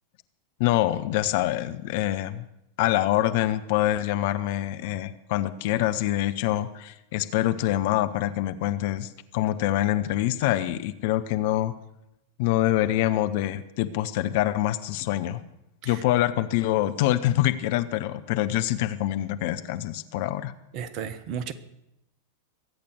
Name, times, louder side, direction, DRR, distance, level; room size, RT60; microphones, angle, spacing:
voice 1, 0.6-2.5 2.8-11.7 12.4-15.4 15.8-20.5, left 14 dB, 50° left, 10 dB, 0.9 m, -25 dB
voice 2, 20.7-21.5, right 7 dB, 40° right, 14 dB, 1.1 m, -34 dB
22.5 x 8.7 x 6.4 m, 0.85 s
figure-of-eight pair, 90°, 0 cm